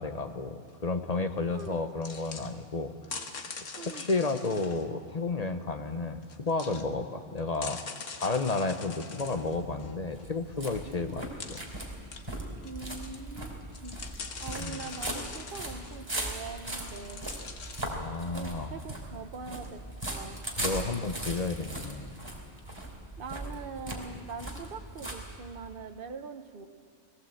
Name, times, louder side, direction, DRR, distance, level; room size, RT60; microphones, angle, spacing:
voice 1, 0.0-2.9 3.7-7.8 8.1-11.2 14.6-14.8 17.8-18.7 20.6-22.1, left 3 dB, 35° left, 7 dB, 0.9 m, -32 dB
sound 1, 1.6-1.7 2.0-2.5 3.0-4.8 6.2-6.9 7.4-10.2 10.9-11.0 11.4-11.7 12.1-12.7 13.0-13.2 13.6-16.0 16.8-17.8, left 5 dB, 85° left, 1.6 m, -43 dB
voice 2, 3.7-4.1 11.1-11.2 12.6-14.0 14.4-17.3 18.3-19.8 20.1-20.4 23.2-26.7, right 5 dB, 50° right, 7 dB, 1.1 m, -42 dB
sound 2, 9.3-25.8, right 1 dB, 20° right, 3.0 m, -39 dB
19.0 x 18.0 x 7.8 m, 2.4 s
omnidirectional pair, 1.3 m